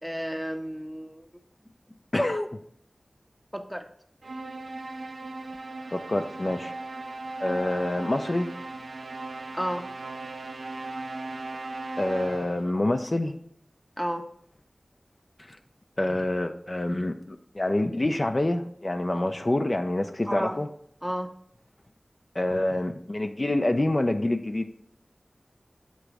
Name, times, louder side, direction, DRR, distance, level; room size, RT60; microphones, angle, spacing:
voice 1, 0.0-1.3 3.5-3.9 9.5-9.9 14.0-14.3 20.3-20.6 21.0-21.3, equal, 5° right, 6 dB, 0.6 m, -31 dB
voice 2, 2.1-2.5 5.9-6.7 7.4-8.5 12.0-13.4 15.5-15.6 16.0-20.7 22.3-24.7, left 1 dB, 45° left, 6 dB, 0.4 m, -27 dB
sound 1, 4.2-12.8, right 2 dB, 85° right, 0.4 m, -37 dB
7.7 x 3.0 x 4.7 m, 0.65 s
wide cardioid pair, 45°, 0 cm